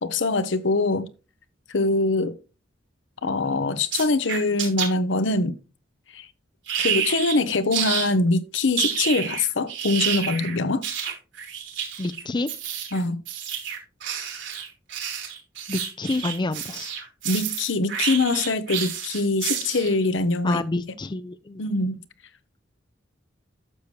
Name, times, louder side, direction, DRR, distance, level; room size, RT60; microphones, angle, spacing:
voice 1, 0.0-1.1 1.7-2.4 3.2-5.6 6.1-6.3 6.8-10.8 12.9-13.2 17.2-20.6 21.6-22.0, left 2 dB, 75° left, 0.9 m, -23 dB
sound 1, 3.9-4.9 6.7-7.4 7.7-8.1 8.5-20.0, right 8 dB, 80° right, 3.7 m, -29 dB
voice 2, 12.0-12.5 15.7-16.9 20.4-21.6, left 2 dB, 25° left, 0.4 m, -28 dB
12.0 x 6.9 x 3.2 m
head